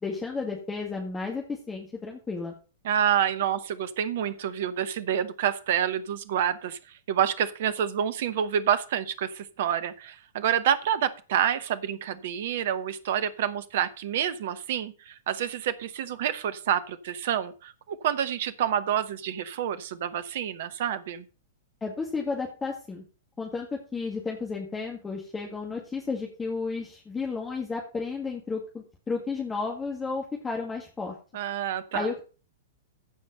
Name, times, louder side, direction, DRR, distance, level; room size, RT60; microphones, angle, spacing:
voice 1, 0.0-2.6 21.8-23.0 23.4-31.2 31.9-32.2, left 4 dB, 15° left, 0 dB, 2.1 m, -32 dB
voice 2, 2.8-6.8 7.1-21.2 31.3-32.1, right 9 dB, 50° right, 15 dB, 1.0 m, -28 dB
15.0 x 5.3 x 5.4 m, 0.35 s
figure-of-eight pair, 105°, 0 cm